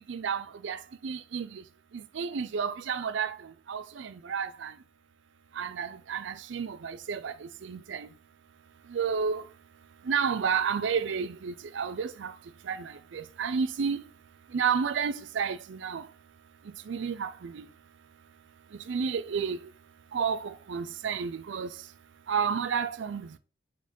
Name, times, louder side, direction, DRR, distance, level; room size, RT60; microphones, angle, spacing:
voice 1, 0.1-1.6 2.1-3.4 3.7-4.7 5.6-8.1 8.9-9.4 10.1-12.3 12.7-14.0 14.5-16.0 16.9-17.6 18.9-19.6 20.1-21.7 22.3-23.4, right 6 dB, 70° right, 0.4 m, -31 dB
4.9 x 4.6 x 5.2 m
head